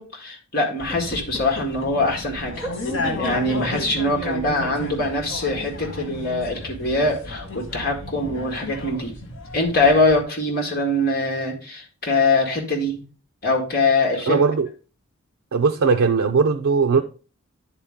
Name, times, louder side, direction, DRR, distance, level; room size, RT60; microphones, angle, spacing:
voice 1, 0.0-2.7 3.2-9.1 9.5-13.0 13.4-14.5, left 2 dB, 45° left, 1.8 m, -23 dB
sound 1, 0.8-10.2, left 1 dB, 60° left, 1.9 m, -32 dB
voice 2, 14.3-14.7 15.5-17.0, right 5 dB, 80° right, 0.5 m, -19 dB
9.8 x 4.2 x 3.6 m
head